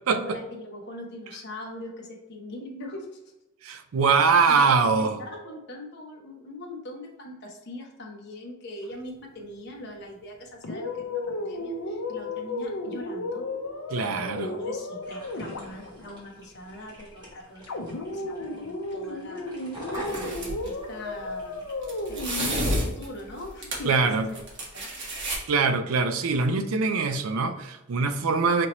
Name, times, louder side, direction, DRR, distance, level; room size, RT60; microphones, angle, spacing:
voice 1, 0.1-3.2 4.5-4.7 5.0-13.4 14.0-19.5 20.1-21.6 22.1-24.4 24.7-24.9, left 1 dB, 55° left, 0 dB, 0.8 m, -41 dB
voice 2, 3.6-5.2 13.9-14.5 23.9-24.3 25.5-28.7, right 4 dB, 85° right, 8 dB, 0.4 m, -23 dB
sound 1, 10.6-16.2 17.7-22.6, left 2 dB, 85° left, 0.6 m, -34 dB
sound 2, 15.0-21.7, equal, 20° right, 1.4 m, -43 dB
sound 3, 19.9-20.7 21.8-24.0 24.3-25.4, right 1 dB, 60° right, 1.3 m, -30 dB
5.1 x 2.8 x 3.0 m, 0.93 s
head